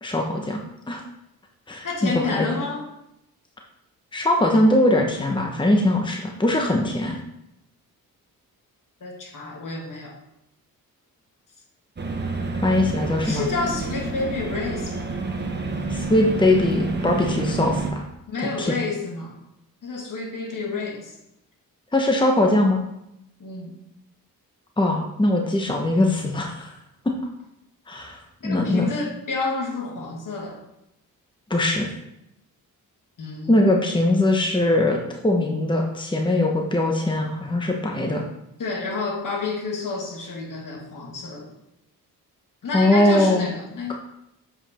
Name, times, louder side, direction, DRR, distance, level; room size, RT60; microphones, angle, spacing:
voice 1, 0.0-0.6 0.9-1.0 1.7-2.5 4.1-7.2 12.6-13.5 15.9-18.0 18.6-18.7 21.9-22.8 24.8-26.7 27.0-27.1 27.9-28.2 28.4-28.9 31.5-31.9 33.5-38.2 42.7-43.5 43.9-44.0, left 1 dB, 10° left, 1 dB, 1.1 m, -21 dB
voice 2, 1.8-2.8 9.0-10.1 12.8-15.0 18.3-19.3 19.8-21.1 23.4-23.7 28.4-30.6 33.2-33.6 38.6-41.5 42.6-43.9, left 3 dB, 55° left, 0 dB, 2.0 m, -29 dB
sound 1, 12.0-17.9, right 3 dB, 30° right, 1.1 m, -28 dB
7.5 x 5.2 x 4.4 m, 0.83 s
cardioid pair, 65°, 37 cm